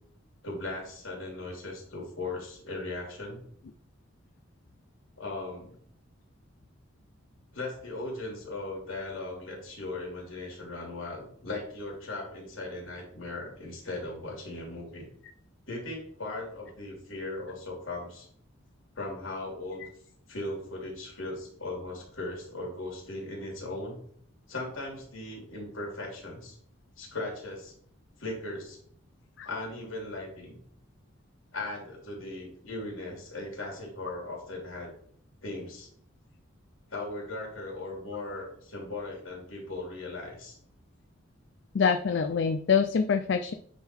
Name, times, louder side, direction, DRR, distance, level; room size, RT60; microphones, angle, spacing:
voice 1, 0.4-3.4 5.2-5.8 7.5-15.0 15.7-18.3 18.9-19.8 20.3-24.0 24.5-26.6 27.0-27.7 28.2-28.8 29.4-30.6 31.5-34.9 35.4-35.9 36.9-40.6, left 2 dB, 75° left, -1 dB, 3.0 m, -38 dB
voice 2, 41.7-43.5, left 6 dB, 60° left, 8 dB, 0.4 m, -25 dB
9.1 x 3.8 x 4.4 m, 0.64 s
head